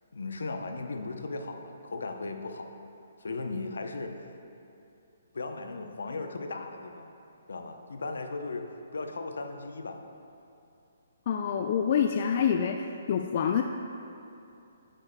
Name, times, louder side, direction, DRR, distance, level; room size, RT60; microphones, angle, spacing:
voice 1, 0.1-2.7 3.2-4.2 5.3-7.1 7.5-8.7 8.9-10.0, left 3 dB, 75° left, 5 dB, 0.7 m, -36 dB
voice 2, 11.3-13.6, left 8 dB, 50° left, 5 dB, 0.3 m, -27 dB
9.9 x 8.4 x 2.2 m, 2.7 s
hypercardioid pair, 140°, 0 cm